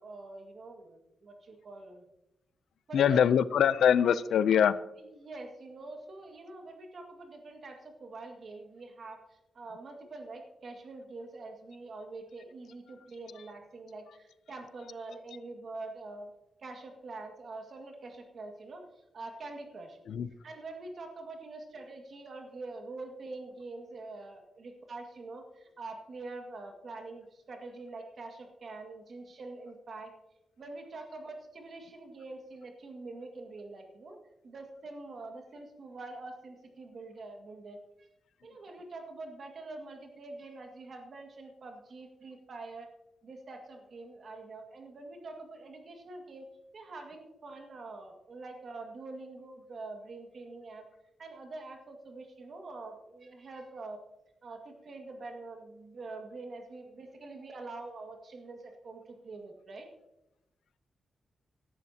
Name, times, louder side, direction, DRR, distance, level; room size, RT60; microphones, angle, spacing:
voice 1, 0.0-2.1 2.9-3.4 5.0-16.3 16.6-20.0 20.4-30.1 30.6-34.2 34.4-38.1 38.4-42.9 43.2-46.5 46.7-50.9 51.2-54.0 54.4-59.9, right 3 dB, 45° right, 3 dB, 1.9 m, -45 dB
voice 2, 2.9-4.8 20.2-20.3, left 8 dB, 85° left, 16 dB, 0.5 m, -23 dB
17.5 x 11.0 x 2.8 m, 0.93 s
wide cardioid pair, 160°, 0 cm